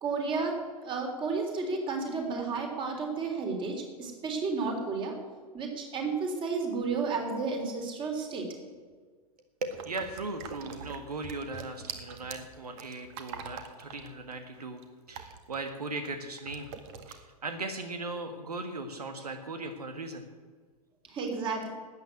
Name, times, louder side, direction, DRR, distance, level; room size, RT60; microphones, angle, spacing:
voice 1, 0.0-5.1 5.5-8.5 21.1-21.7, right 4 dB, 25° right, 3 dB, 3.5 m, -32 dB
voice 2, 9.6-14.8 15.1-16.7 17.1-20.2, right 2 dB, 75° right, 7 dB, 1.6 m, -38 dB
sound 1, 9.7-16.1 16.5-17.1, right 7 dB, 45° right, 1.9 m, -44 dB
13.0 x 9.0 x 9.6 m, 1.5 s
figure-of-eight pair, 105°, 20 cm